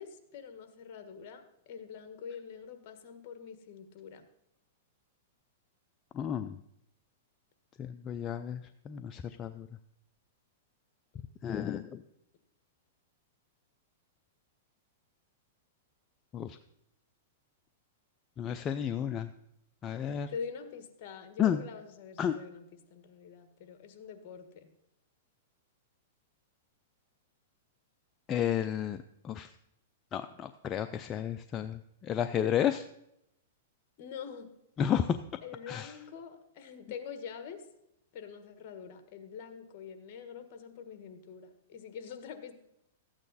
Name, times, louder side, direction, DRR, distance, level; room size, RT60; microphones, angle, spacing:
voice 1, 0.0-4.2 20.3-22.6 22.9-24.7 34.0-34.5 35.4-37.6 38.1-42.5, left 6 dB, 45° left, 8 dB, 1.5 m, -45 dB
voice 2, 6.1-6.6 7.8-8.6 8.9-9.7 11.4-12.0 16.3-16.6 18.4-19.3 19.8-20.3 21.4-21.6 22.2-22.3 28.3-29.5 30.1-32.9 34.8-35.2 35.7-35.9, left 9 dB, 25° left, 8 dB, 0.4 m, -32 dB
13.5 x 8.8 x 4.1 m, 0.80 s
hypercardioid pair, 140°, 0 cm